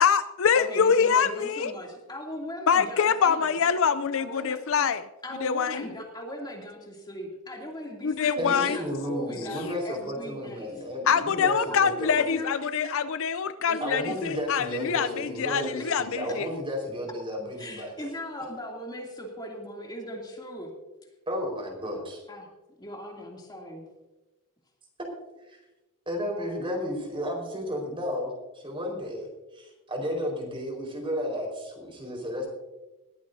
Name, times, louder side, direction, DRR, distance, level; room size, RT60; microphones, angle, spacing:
voice 1, 0.0-1.7 2.7-5.1 5.4-5.9 8.0-8.8 11.1-16.5, left 6 dB, 65° left, 13 dB, 0.5 m, -24 dB
voice 2, 0.5-3.7 4.1-4.6 5.2-10.9 11.3-11.8 12.1-12.5 13.7-14.2 15.8-15.9 17.6-20.7 22.3-22.5 22.8-23.9, left 1 dB, 20° left, 0 dB, 2.7 m, -39 dB
voice 3, 8.4-12.1 13.8-17.9 21.3-22.2 26.1-29.3 29.5-32.5, equal, 25° right, 1 dB, 4.6 m, -33 dB
20.5 x 15.0 x 2.7 m, 1.1 s
head